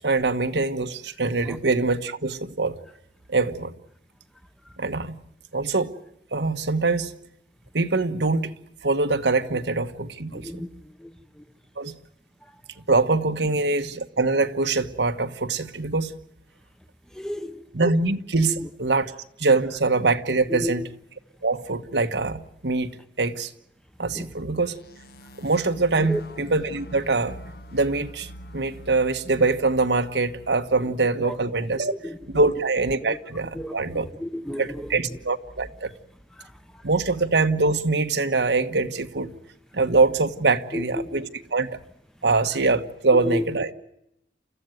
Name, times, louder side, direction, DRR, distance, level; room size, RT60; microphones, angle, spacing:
voice 1, 0.0-2.8 3.3-3.7 4.8-5.2 5.5-5.9 6.3-7.1 7.7-8.5 8.8-10.6 11.8-12.0 12.9-16.2 17.7-19.1 19.4-20.9 21.4-22.9 23.2-23.5 24.0-24.7 25.4-27.4 27.7-31.9 32.3-34.1 34.6-35.9 36.8-39.3 39.7-41.8 42.2-43.7, right 3 dB, 90° right, 1.4 m, -23 dB
voice 2, 10.3-11.1 11.4-11.5 17.1-17.6 18.4-18.6 20.5-20.8 24.1-24.3 26.1-26.2 31.2-31.4 31.9-32.2 33.1-33.2 33.5-35.2 36.4-36.5 40.7-41.1 43.2-43.5, left 1 dB, 5° left, 0.9 m, -32 dB
sound 1, 24.6-30.8, equal, 60° left, 1.2 m, -43 dB
29.5 x 14.5 x 9.2 m
head